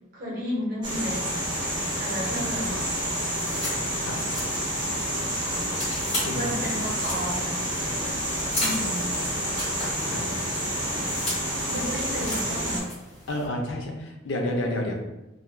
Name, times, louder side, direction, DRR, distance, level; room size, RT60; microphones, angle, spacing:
voice 1, 0.1-1.3 2.0-2.9 6.3-7.6 8.5-9.1 11.7-12.9, equal, 45° right, -5 dB, 0.9 m, -32 dB
sound 1, 0.8-12.8, equal, 20° right, 0.6 m, -29 dB
sound 2, 2.2-13.5, left 1 dB, 35° left, 1.0 m, -37 dB
voice 2, 6.3-6.7 10.1-10.2 13.3-14.9, left 1 dB, 70° left, 1 dB, 0.5 m, -30 dB
3.0 x 2.3 x 2.3 m, 0.99 s
head